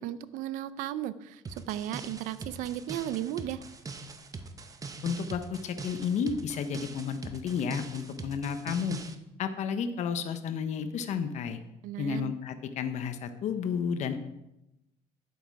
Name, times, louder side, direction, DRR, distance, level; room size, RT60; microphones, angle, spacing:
voice 1, 0.0-3.6 11.8-12.3, right 12 dB, 85° right, 15 dB, 0.6 m, -35 dB
sound 1, 1.4-9.1, right 4 dB, 25° right, 1.0 m, -42 dB
voice 2, 5.0-9.0 9.4-11.6 12.0-14.2, left 6 dB, 60° left, 8 dB, 1.0 m, -32 dB
10.5 x 8.0 x 4.8 m, 0.88 s
cardioid pair, 105°, 13 cm